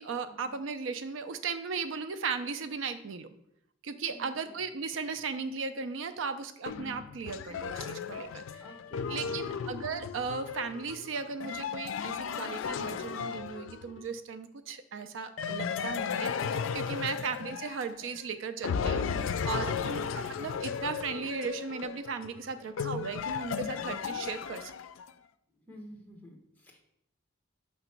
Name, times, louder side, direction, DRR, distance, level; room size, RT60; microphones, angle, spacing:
voice 1, 0.0-3.3 3.8-8.6 9.1-24.7, right 5 dB, 80° right, 10 dB, 0.5 m, -36 dB
voice 2, 4.1-4.5 8.6-9.6 17.0-17.3 25.5-26.8, equal, 10° left, 0 dB, 1.1 m, -52 dB
sound 1, 6.7-14.1 15.4-18.2 18.6-25.1, left 6 dB, 90° left, 0.4 m, -35 dB
6.3 x 3.0 x 5.7 m, 0.75 s
head